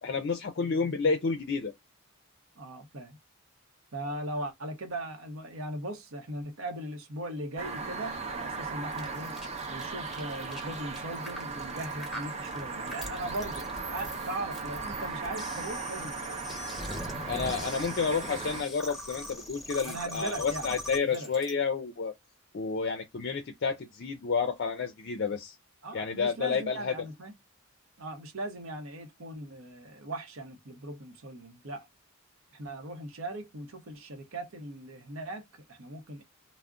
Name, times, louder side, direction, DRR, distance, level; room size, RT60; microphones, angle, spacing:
voice 1, 0.0-1.7 17.3-22.1 22.5-25.6 25.9-26.9, left 5 dB, 50° left, 0.4 m, -30 dB
voice 2, 2.6-3.2 3.9-9.3 9.7-16.4 17.3-17.9 19.8-21.3 25.8-27.3 28.0-31.9 32.5-36.2, right 1 dB, 75° right, 0.7 m, -39 dB
sound 1, 7.6-18.6, right 4 dB, 30° right, 0.5 m, -37 dB
sound 2, 8.9-21.5, left 1 dB, ahead, 0.9 m, -42 dB
2.4 x 2.0 x 3.5 m
head